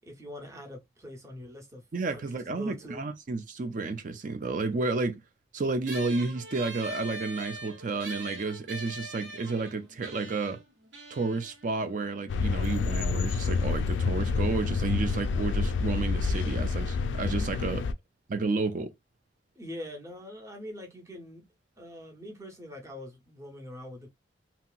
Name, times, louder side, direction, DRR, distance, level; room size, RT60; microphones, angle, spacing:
voice 1, 0.0-3.0 19.6-21.4 21.8-24.1, left 1 dB, 15° right, 0.8 m, -43 dB
voice 2, 1.9-5.2 5.5-10.6 11.1-17.8 18.3-18.9, right 3 dB, 45° right, 0.4 m, -31 dB
sound 1, 5.9-12.7, right 2 dB, 75° right, 1.0 m, -43 dB
sound 2, 12.3-17.9, left 4 dB, 75° left, 0.3 m, -28 dB
2.8 x 2.8 x 2.3 m
head